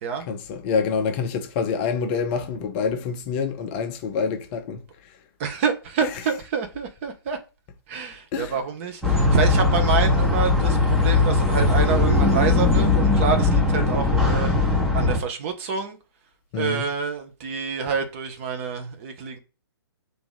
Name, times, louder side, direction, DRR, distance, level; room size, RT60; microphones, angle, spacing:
voice 1, 0.3-5.1 6.0-6.1 8.3-8.6 16.5-16.8, left 5 dB, 25° left, 0.5 m, -27 dB
voice 2, 5.4-7.4 7.9-14.5 14.9-16.0 16.6-19.4, right 6 dB, 30° right, 0.7 m, -27 dB
sound 1, 9.0-15.2, left 3 dB, 5° right, 0.8 m, -19 dB
2.9 x 2.5 x 3.9 m
figure-of-eight pair, 125°, 13 cm